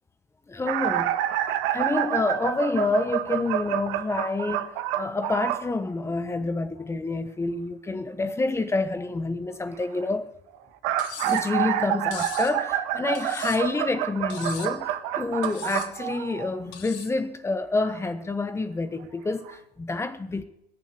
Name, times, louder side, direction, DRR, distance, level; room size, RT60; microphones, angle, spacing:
voice 1, 0.5-1.4 1.7-10.3 11.2-20.4, left 3 dB, 10° left, 1.2 m, -28 dB
sound 1, 0.7-5.7 10.5-16.7 17.8-17.9 19.0-19.1 19.5-19.6, right 12 dB, 45° right, 1.5 m, -28 dB
Cutlery silverware, 11.0-11.5 12.1-12.6 13.2-13.8 14.3-14.8 15.4-15.9 16.7-17.2, left 9 dB, 60° left, 2.4 m, -40 dB
21.0 x 7.1 x 8.3 m
hypercardioid pair, 120°, 30 cm